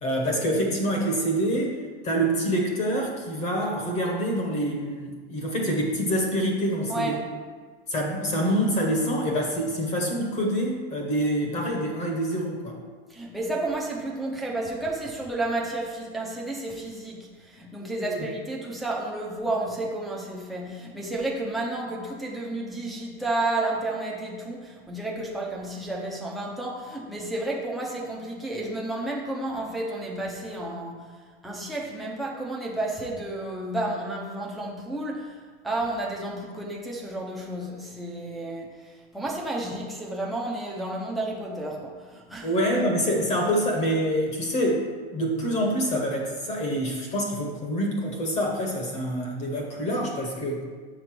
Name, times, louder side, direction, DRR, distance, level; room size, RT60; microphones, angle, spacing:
voice 1, 0.0-1.8 2.0-7.2 7.9-12.8 18.0-18.3 42.4-50.6, equal, 20° left, 0 dB, 0.9 m, -26 dB
voice 2, 13.1-31.1 31.4-35.4 35.6-42.5, right 2 dB, ahead, -4 dB, 0.6 m, -31 dB
6.9 x 3.9 x 6.0 m, 1.5 s
supercardioid pair, 170°, 33 cm